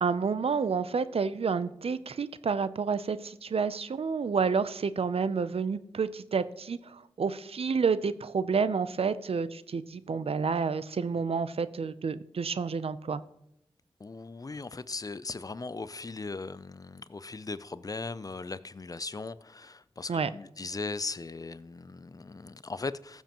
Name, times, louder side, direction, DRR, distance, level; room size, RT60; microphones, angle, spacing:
voice 1, 0.0-13.2 20.1-20.3, right 5 dB, 70° right, 0.5 m, -29 dB
voice 2, 14.0-23.2, left 3 dB, 35° left, 0.4 m, -38 dB
14.5 x 7.2 x 3.0 m
cardioid pair, 50°, 10 cm